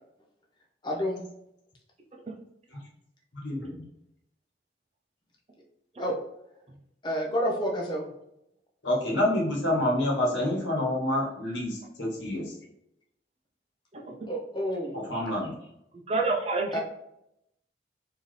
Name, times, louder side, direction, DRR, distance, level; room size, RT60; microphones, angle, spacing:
voice 1, 0.8-1.2 6.0-6.1 7.0-8.1 14.3-15.0 16.7-16.8, equal, 25° left, -2 dB, 0.7 m, -29 dB
voice 2, 3.3-3.8 8.8-12.6 14.9-15.5, left 1 dB, 80° left, -2 dB, 1.3 m, -28 dB
voice 3, 16.1-16.8, right 3 dB, 35° right, 0 dB, 0.6 m, -28 dB
4.1 x 2.8 x 3.2 m, 0.80 s
head